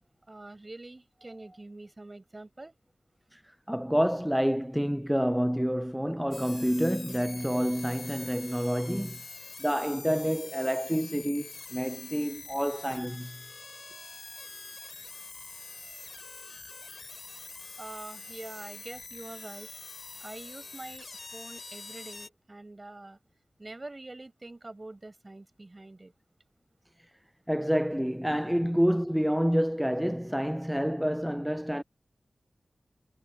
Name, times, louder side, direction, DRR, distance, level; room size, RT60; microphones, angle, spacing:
voice 1, 0.3-2.8 17.8-19.7 20.2-23.2 23.6-26.1 28.6-28.7, right 2 dB, 35° right, 5.3 m, -45 dB
voice 2, 3.7-9.2 9.6-13.4 27.5-31.8, equal, 5° right, 0.5 m, -28 dB
sound 1, 6.3-22.3, left 3 dB, 65° left, 3.9 m, -45 dB
cardioid pair, 40°, 0 cm